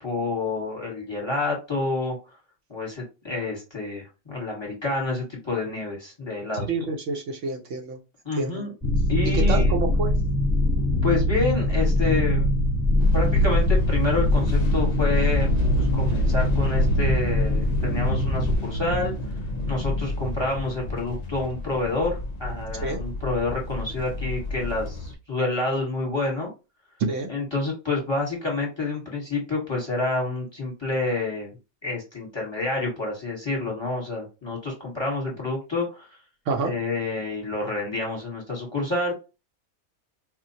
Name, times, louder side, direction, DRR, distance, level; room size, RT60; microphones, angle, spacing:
voice 1, 0.0-2.2 2.7-6.7 8.2-8.7 9.1-9.9 11.0-12.5 13.1-15.5 15.8-19.1 19.7-26.5 27.3-31.5 31.8-36.1 36.6-39.1, left 3 dB, 20° left, -1 dB, 1.0 m, -28 dB
voice 2, 6.5-8.0 8.4-8.6 9.3-10.1 22.8-23.0 27.0-27.3 36.5-36.7, right 3 dB, 65° right, 3 dB, 0.9 m, -28 dB
sound 1, 8.8-18.6, left 1 dB, 5° right, 0.8 m, -22 dB
sound 2, 13.0-25.1, left 1 dB, 60° left, 0.4 m, -30 dB
4.3 x 2.1 x 2.7 m, 0.29 s
omnidirectional pair, 1.5 m